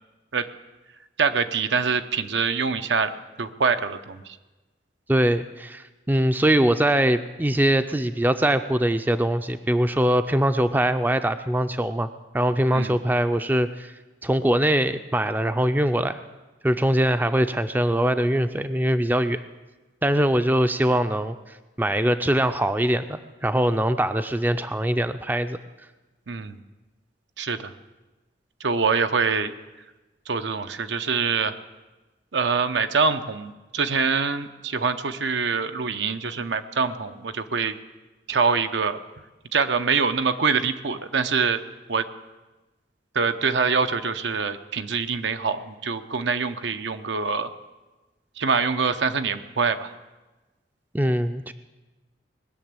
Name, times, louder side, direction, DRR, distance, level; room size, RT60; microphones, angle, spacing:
voice 1, 1.2-3.1 3.4-4.4 12.7-12.9 26.3-26.6 27.4-27.7 28.6-29.5 30.3-31.6 32.3-37.7 38.3-39.0 39.5-41.6 41.9-42.0 43.1-47.5 48.4-49.9, right 5 dB, 80° right, 9 dB, 0.8 m, -24 dB
voice 2, 5.1-12.1 12.3-13.9 14.2-16.2 16.6-19.4 20.0-21.4 21.8-25.6 50.9-51.5, right 1 dB, 10° right, 10 dB, 0.4 m, -22 dB
20.0 x 6.9 x 8.8 m, 1.1 s
head